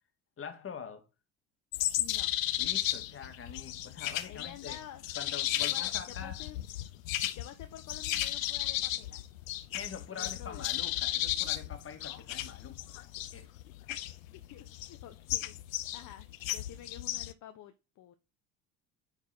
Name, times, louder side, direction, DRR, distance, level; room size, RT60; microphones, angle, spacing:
voice 1, 0.4-1.1 2.6-4.8 5.2-6.4 9.7-12.8 13.3-13.5, left 7 dB, 35° left, 1.9 m, -44 dB
sound 1, 1.7-17.3, left 14 dB, 85° left, 0.6 m, -34 dB
voice 2, 2.0-2.3 4.3-5.0 5.6-6.6 7.3-9.2 10.1-10.7 13.9-15.6 15.9-18.1, left 11 dB, 50° left, 1.0 m, -50 dB
9.8 x 4.1 x 4.0 m
hypercardioid pair, 70°, 39 cm